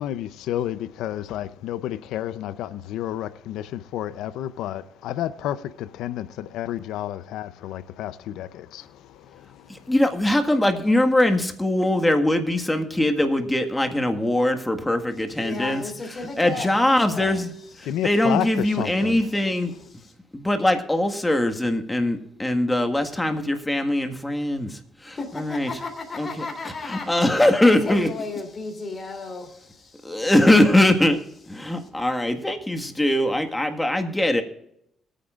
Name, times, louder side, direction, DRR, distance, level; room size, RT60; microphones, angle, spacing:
voice 1, 0.0-9.9 17.1-17.4 17.8-19.2, left 12 dB, 90° left, 0.6 m, -31 dB
voice 2, 9.7-15.8 16.1-17.5 17.8-19.7 20.3-25.7 26.2-28.1 30.0-31.2 31.5-34.4, left 1 dB, 10° left, 1.6 m, -22 dB
voice 3, 15.4-16.8 25.2-27.1 27.6-29.7 30.2-30.7, left 3 dB, 35° left, 3.2 m, -34 dB
22.0 x 9.2 x 2.4 m
cardioid pair, 90°, 0 cm